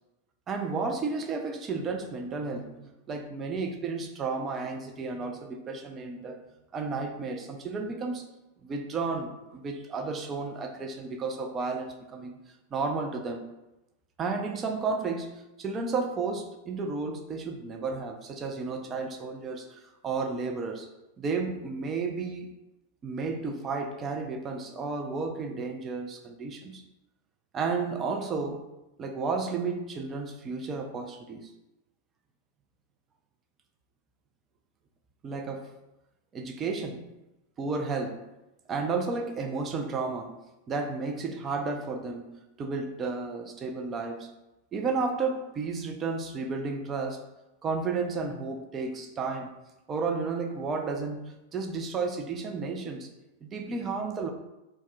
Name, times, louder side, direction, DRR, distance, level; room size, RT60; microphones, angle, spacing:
voice 1, 0.5-6.4 6.7-8.3 8.6-12.3 12.7-13.5 14.2-20.9 21.2-22.5 23.0-26.8 27.5-28.7 29.0-31.5 35.2-35.7 36.3-37.1 37.6-38.3 38.7-40.4 40.7-44.3 44.7-47.2 47.6-49.6 49.9-53.1 53.4-54.3, right 4 dB, 25° right, 4 dB, 0.4 m, -32 dB
2.2 x 2.1 x 3.6 m, 0.96 s
figure-of-eight pair, 90°, 0 cm